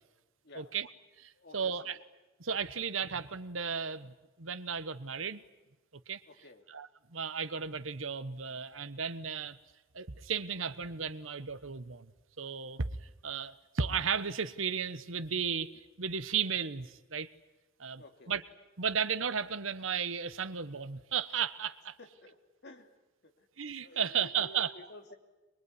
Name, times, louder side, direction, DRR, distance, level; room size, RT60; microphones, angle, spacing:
voice 1, 0.5-0.9 1.2-2.0 2.4-5.4 6.1-6.2 6.7-9.6 9.9-12.1 12.4-12.9 13.2-17.3 17.8-18.4 18.8-21.9 23.6-24.7, right 6 dB, 80° right, 13 dB, 1.2 m, -34 dB
voice 2, 1.3-2.0 6.3-6.6 18.0-18.4 22.0-22.4 22.6-22.9 23.2-23.5 23.8-25.1, left 1 dB, 55° left, 5 dB, 2.8 m, -52 dB
23.5 x 23.0 x 9.7 m, 1.1 s
head